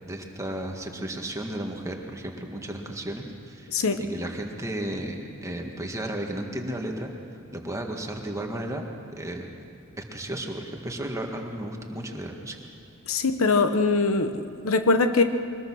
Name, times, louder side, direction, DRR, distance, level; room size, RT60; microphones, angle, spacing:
voice 1, 0.0-3.7 4.0-7.1 7.5-8.9 9.2-9.5 10.0-12.6, right 1 dB, 15° right, 2 dB, 1.8 m, -34 dB
voice 2, 13.1-15.2, left 3 dB, 70° left, 8 dB, 1.0 m, -22 dB
23.5 x 20.5 x 6.3 m, 2.5 s
head